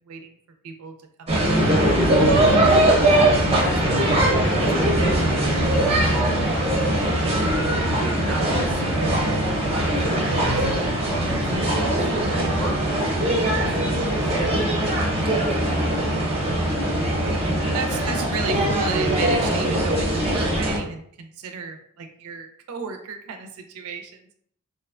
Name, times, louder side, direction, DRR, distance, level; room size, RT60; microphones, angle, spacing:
voice 1, 0.1-0.4 0.6-1.7 17.7-24.2, right 5 dB, 80° right, 6 dB, 0.4 m, -34 dB
sound 1, 1.3-20.8, right 1 dB, 30° right, 0.5 m, -21 dB
voice 2, 2.9-5.4 5.7-15.6, right 1 dB, 10° left, -3 dB, 0.6 m, -34 dB
2.7 x 2.1 x 2.4 m, 0.64 s
head